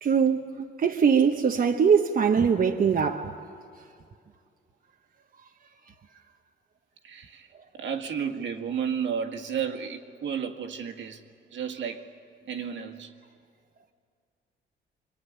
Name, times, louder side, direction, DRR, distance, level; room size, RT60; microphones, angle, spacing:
voice 1, 0.0-0.4 0.8-3.3, right 6 dB, 45° right, 1.2 m, -22 dB
voice 2, 7.0-11.3 11.5-12.1 12.5-13.1, right 7 dB, 65° right, 2.0 m, -32 dB
26.5 x 23.5 x 9.6 m
cardioid pair, 90°, 20 cm